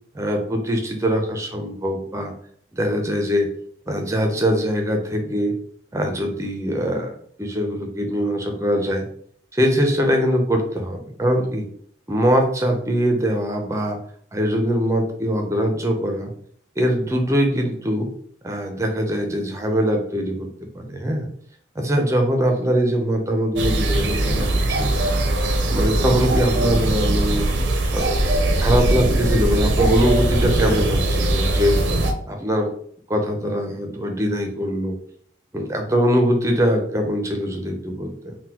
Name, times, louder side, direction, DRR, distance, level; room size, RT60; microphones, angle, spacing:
voice 1, 0.1-2.3 2.7-3.5 3.9-5.5 5.9-9.0 9.5-11.7 12.1-14.0 14.3-16.3 16.8-18.1 18.4-20.5 20.7-21.3 21.8-25.2 25.7-27.5 27.9-28.2 28.6-31.8 32.3-32.7 33.1-35.0 35.5-38.4, equal, 15° right, 3 dB, 0.5 m, -22 dB
sound 1, 23.6-32.1, right 1 dB, 85° right, 0.5 m, -20 dB
3.8 x 2.2 x 2.8 m, 0.62 s
head